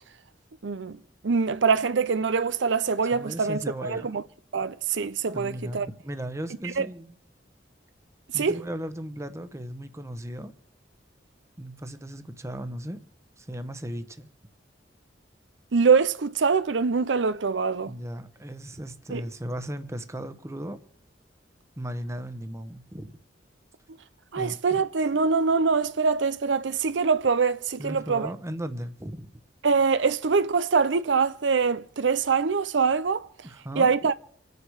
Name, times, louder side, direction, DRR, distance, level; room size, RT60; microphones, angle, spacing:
voice 1, 0.6-1.0 1.2-4.2 4.5-5.9 6.6-6.9 8.4-8.6 15.7-17.9 19.1-19.2 24.3-28.3 29.6-33.3 33.8-34.1, right 5 dB, 85° right, 0.6 m, -24 dB
voice 2, 3.1-4.1 5.3-7.2 8.3-10.5 11.6-13.0 13.4-14.3 17.8-20.8 21.8-23.1 24.4-24.8 27.8-29.3 33.4-34.1, equal, 15° right, 1.0 m, -36 dB
27.0 x 9.5 x 4.9 m
head